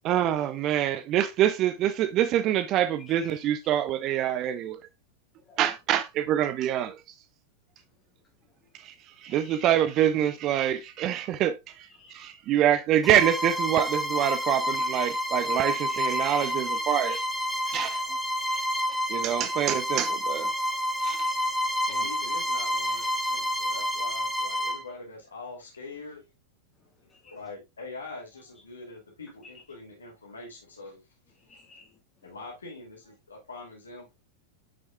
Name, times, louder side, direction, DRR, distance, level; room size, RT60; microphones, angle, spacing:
voice 1, 0.0-4.8 5.6-7.0 8.8-8.9 9.2-11.9 12.1-17.2 17.7-18.0 19.1-20.5 21.0-21.2, right 11 dB, 35° right, 0.5 m, -25 dB
voice 2, 3.1-3.5 5.4-5.6 8.4-8.7 9.1-9.6 11.9-12.3 14.6-14.7 15.9-16.4 16.7-16.8 17.9-18.0 18.7-18.8 21.2-21.7 26.7-27.4 31.4-32.4, left 3 dB, 20° left, 2.2 m, -55 dB
Bowed string instrument, 13.0-24.8, equal, ahead, 1.0 m, -29 dB
voice 3, 21.9-26.3 27.2-31.0 31.5-31.7 32.2-34.1, left 3 dB, 70° left, 2.7 m, -43 dB
7.7 x 6.3 x 2.3 m
figure-of-eight pair, 90°, 0 cm